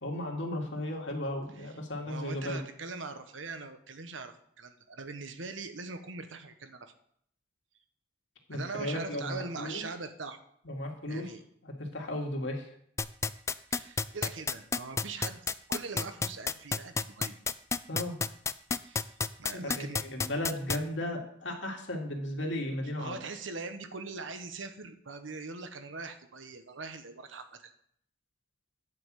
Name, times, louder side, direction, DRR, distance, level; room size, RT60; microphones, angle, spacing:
voice 1, 0.0-2.6 8.5-9.8 10.7-11.3 11.6-12.7 17.9-18.2 19.5-23.2, left 1 dB, 70° left, 1 dB, 2.2 m, -35 dB
voice 2, 2.0-6.9 8.5-10.4 11.1-11.4 13.7-15.4 15.7-17.4 18.8-19.1 19.4-20.0 23.0-27.7, right 4 dB, 85° right, 8 dB, 1.1 m, -42 dB
sound 1, 13.0-20.8, left 4 dB, 15° left, 0.3 m, -29 dB
9.5 x 5.5 x 7.5 m, 0.66 s
head